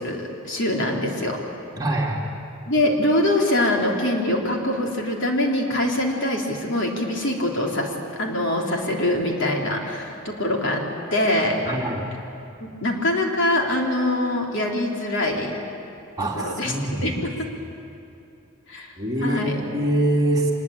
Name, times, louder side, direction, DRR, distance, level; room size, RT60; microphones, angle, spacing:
voice 1, 0.0-1.4 2.7-10.8 11.1-11.6 12.6-15.6 16.4-16.7 17.0-17.5 18.7-18.9 19.2-19.6, left 1 dB, 60° left, 0 dB, 3.5 m, -23 dB
voice 2, 1.8-2.2 11.6-12.0 16.2-17.2 19.0-20.5, right 1 dB, 20° right, -2 dB, 3.0 m, -24 dB
25.5 x 21.0 x 8.9 m, 2.7 s
head